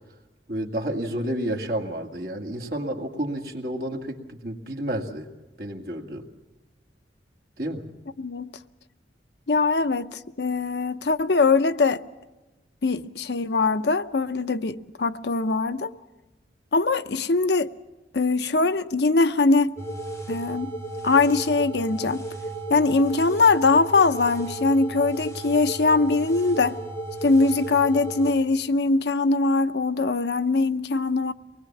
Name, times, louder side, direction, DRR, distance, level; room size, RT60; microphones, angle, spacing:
voice 1, 0.5-5.3 5.6-6.2 7.6-7.9, right 1 dB, 55° right, 2.2 m, -30 dB
voice 2, 8.2-8.5 9.5-12.0 12.8-15.9 16.7-17.7 18.1-19.8 20.3-20.7 21.0-22.2 22.7-26.8 27.2-31.3, left 3 dB, 70° left, 0.7 m, -22 dB
sound 1, 19.8-28.3, right 2 dB, 15° left, 4.8 m, -34 dB
24.0 x 20.0 x 7.1 m
head